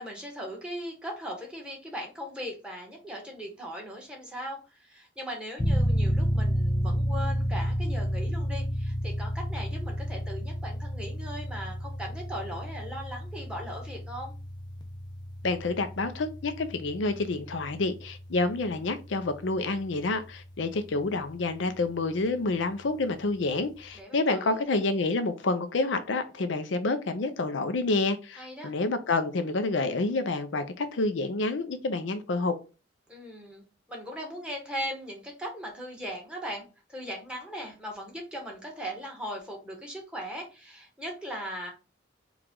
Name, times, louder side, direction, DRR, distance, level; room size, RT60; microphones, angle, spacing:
voice 1, 0.0-14.3 23.9-24.6 28.3-28.7 33.1-41.7, equal, 5° right, 1.2 m, -39 dB
sound 1, 5.6-20.0, equal, 25° left, 0.6 m, -31 dB
voice 2, 15.4-32.6, left 3 dB, 80° left, 0.6 m, -28 dB
4.8 x 2.4 x 3.7 m
head